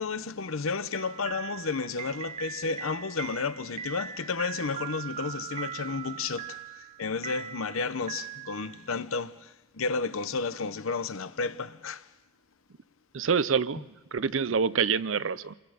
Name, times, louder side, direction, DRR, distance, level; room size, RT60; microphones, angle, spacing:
voice 1, 0.0-12.1, left 4 dB, 85° left, 0.8 m, -32 dB
sound 1, 0.9-8.9, right 8 dB, 30° right, 0.6 m, -40 dB
voice 2, 13.1-15.5, right 6 dB, 70° right, 0.6 m, -27 dB
27.5 x 21.5 x 5.1 m
head